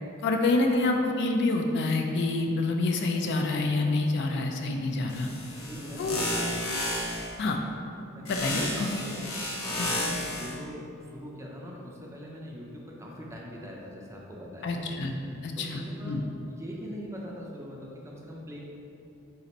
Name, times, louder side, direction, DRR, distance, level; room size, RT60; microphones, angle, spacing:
voice 1, 0.2-5.3 6.0-6.2 7.4-7.6 8.3-9.0 9.8-9.9 14.6-15.1 15.4-16.2, left 2 dB, 55° left, 3 dB, 0.3 m, -27 dB
Electric Source, 5.1-7.3 8.3-10.5, left 1 dB, 75° left, 0.7 m, -32 dB
voice 2, 5.6-6.4 8.1-9.2 9.7-14.8 15.3-16.2 16.5-18.6, equal, 15° right, -3 dB, 0.4 m, -42 dB
4.0 x 2.5 x 4.1 m, 2.7 s
head